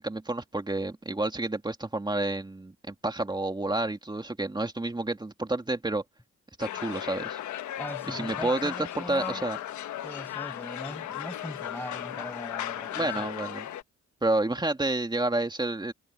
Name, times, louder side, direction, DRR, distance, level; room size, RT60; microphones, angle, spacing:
voice 1, 0.0-6.0 6.6-7.4 8.1-9.6 12.9-13.7 14.2-15.9, right 2 dB, 15° right, 2.6 m, -30 dB
sound 1, 6.6-13.8, left 12 dB, 70° left, 1.3 m, -36 dB
voice 2, 7.8-9.5 10.0-13.3, left 1 dB, 5° left, 6.0 m, -40 dB
cardioid pair, 90°, 30 cm